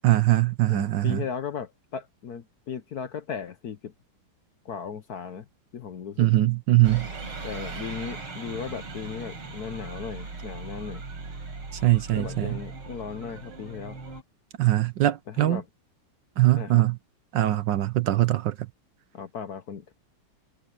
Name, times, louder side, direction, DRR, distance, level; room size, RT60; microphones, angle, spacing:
voice 1, 0.0-1.2 6.2-7.1 11.7-12.6 14.6-15.6 16.4-17.0 17.3-18.7, right 15 dB, 70° right, 1.2 m, -22 dB
voice 2, 0.7-3.9 4.6-5.5 5.7-6.3 7.4-11.0 12.1-14.0 15.3-15.6 16.6-16.8 19.1-19.9, left 7 dB, 55° left, 1.2 m, -36 dB
sound 1, 6.8-14.2, right 3 dB, 90° right, 5.3 m, -38 dB
omnidirectional pair, 2.3 m